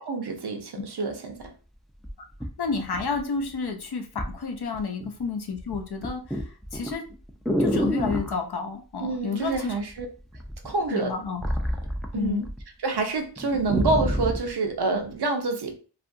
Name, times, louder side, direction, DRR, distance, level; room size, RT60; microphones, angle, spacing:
voice 1, 0.0-1.5 9.0-10.1 10.6-11.1 12.1-12.5 12.8-15.7, right 3 dB, 70° right, 4 dB, 0.7 m, -27 dB
sound 1, 1.4-1.5 2.0-3.5 4.2-4.4 4.7-5.2 5.5-8.4 9.5-10.0 10.3-12.6 12.9-13.0 13.4-14.5 15.1-15.2, equal, ahead, 0.3 m, -28 dB
voice 2, 2.6-6.4 6.7-7.0 7.6-9.7 10.9-11.4 12.1-12.5, left 5 dB, 65° left, 3 dB, 0.6 m, -30 dB
2.7 x 2.4 x 2.5 m, 0.37 s
wide cardioid pair, 65°, 41 cm